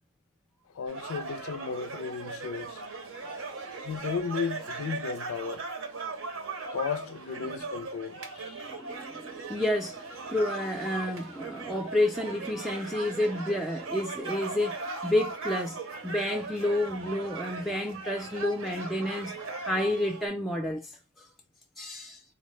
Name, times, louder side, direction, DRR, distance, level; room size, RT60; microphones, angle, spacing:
voice 1, 0.7-2.8 3.8-5.7 6.7-8.2, left 6 dB, 80° left, 0.4 m, -34 dB
sound 1, 0.9-20.3, right 3 dB, 70° right, 0.7 m, -39 dB
voice 2, 8.4-21.3 21.8-22.2, left 1 dB, ahead, 0.4 m, -30 dB
4.0 x 2.1 x 3.1 m
head